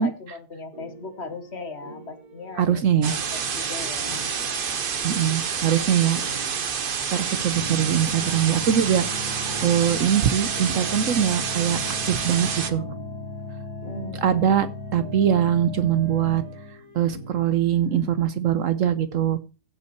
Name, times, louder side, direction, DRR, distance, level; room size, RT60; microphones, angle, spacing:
voice 1, 0.0-4.2 13.8-14.6, left 3 dB, 45° left, 9 dB, 1.5 m, -38 dB
sound 1, 0.7-18.2, right 1 dB, 80° right, 4.3 m, -45 dB
voice 2, 2.6-3.1 5.0-6.2 7.1-9.1 9.6-11.8 12.1-12.8 14.2-16.4 16.9-19.4, right 9 dB, 60° right, 13 dB, 1.0 m, -22 dB
sound 2, 3.0-12.7, right 6 dB, 45° right, 0.9 m, -28 dB
sound 3, 7.5-16.8, left 1 dB, 15° right, 2.7 m, -36 dB
15.5 x 5.6 x 4.6 m, 0.33 s
omnidirectional pair, 1.6 m